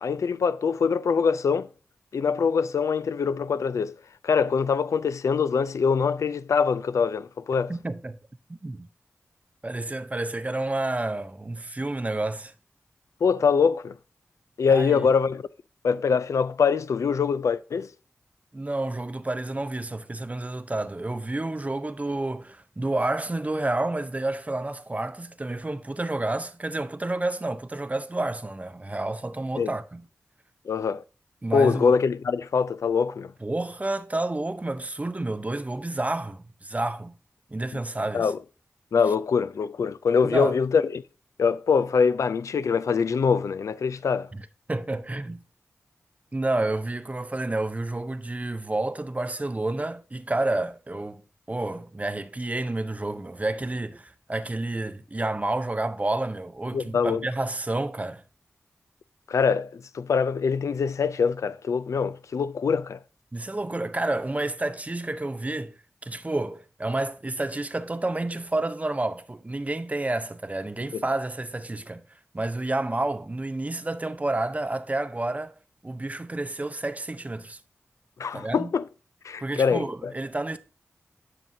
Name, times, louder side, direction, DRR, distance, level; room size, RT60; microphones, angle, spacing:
voice 1, 0.0-1.7 2.1-4.0 4.2-7.7 13.2-13.9 14.6-15.4 15.8-17.9 29.6-29.7 30.7-31.0 31.5-33.3 38.1-38.4 38.9-41.0 41.4-44.3 56.7-57.2 59.3-63.0 70.9-71.0 78.2-78.8 79.2-80.1, left 5 dB, 85° left, 0.3 m, -24 dB
voice 2, 7.7-8.2 8.6-8.9 9.6-12.5 14.7-15.1 18.5-30.1 31.4-31.9 33.4-37.2 37.5-38.3 40.2-40.6 44.3-45.4 46.3-51.2 51.5-58.2 63.3-65.7 66.0-75.5 75.8-77.6 78.3-78.7 79.4-80.6, right 2 dB, 30° right, 0.7 m, -30 dB
10.5 x 6.8 x 2.7 m
cardioid pair, 50°, 5 cm